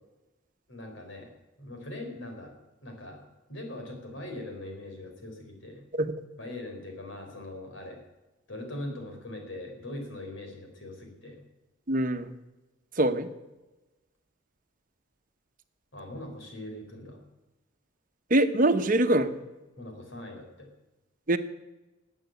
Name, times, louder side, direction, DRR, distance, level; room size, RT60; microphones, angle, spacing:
voice 1, 0.7-1.3 1.6-2.5 2.8-3.2 3.5-5.8 6.4-8.0 8.5-11.4 15.9-17.2 19.8-20.7, left 1 dB, 70° left, 3 dB, 4.1 m, -41 dB
voice 2, 11.9-12.3 13.0-13.3 18.3-19.4 21.3-21.4, right 1 dB, 45° right, 9 dB, 1.0 m, -23 dB
15.0 x 8.9 x 9.5 m, 1.0 s
head